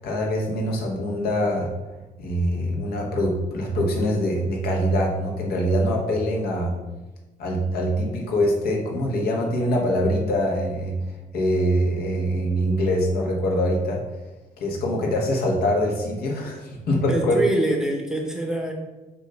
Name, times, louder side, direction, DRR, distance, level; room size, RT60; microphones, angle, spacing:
voice 1, 0.0-1.7 2.2-6.8 7.4-14.0 14.6-17.5, equal, 75° left, 0 dB, 1.5 m, -24 dB
voice 2, 17.1-18.7, right 1 dB, 5° right, 1 dB, 0.7 m, -25 dB
7.1 x 2.8 x 5.7 m, 1.1 s
cardioid pair, 170°, 16 cm